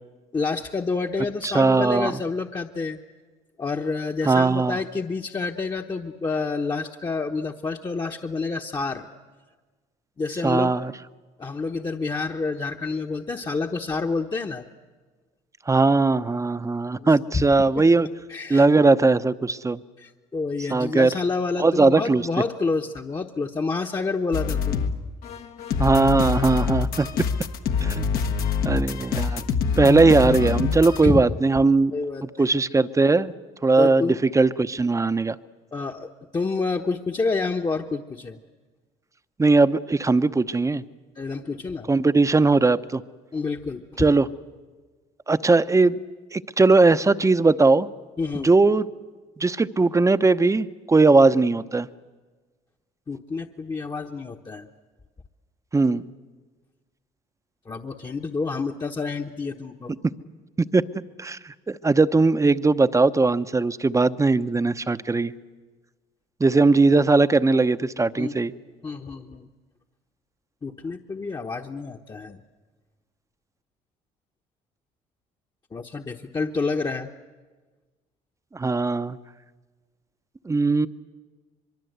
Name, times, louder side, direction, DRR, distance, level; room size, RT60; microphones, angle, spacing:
voice 1, 0.3-3.0 3.6-9.1 10.2-10.7 11.4-14.7 16.9-17.1 17.3-17.4 18.3-18.7 20.0-24.9 28.3-28.4 31.0-31.4 31.9-32.5 33.8-34.2 35.7-38.4 41.2-41.9 43.3-44.0 48.2-48.5 53.1-54.7 57.7-59.9 68.2-68.4 68.8-69.5 70.6-72.4 75.7-77.1, left 4 dB, 25° left, 1 dB, 1.1 m, -28 dB
voice 2, 1.4-2.1 4.3-4.8 10.4-10.9 15.7-18.1 18.5-19.8 20.7-21.1 21.6-22.2 25.8-27.1 27.8-28.1 28.6-29.4 29.8-31.9 32.4-33.3 33.6-35.4 39.4-40.8 41.9-43.0 44.0-44.3 45.3-46.0 46.3-47.9 48.4-48.9 49.4-51.9 55.7-56.0 60.6-60.8 61.2-65.3 66.4-68.5 78.5-79.2 80.4-80.9, right 3 dB, 20° right, 13 dB, 0.8 m, -19 dB
sound 1, 24.3-25.0 25.2-31.0, left 6 dB, 70° left, 1.4 m, -25 dB
23.5 x 23.0 x 8.1 m, 1.3 s
supercardioid pair, 65°, 16 cm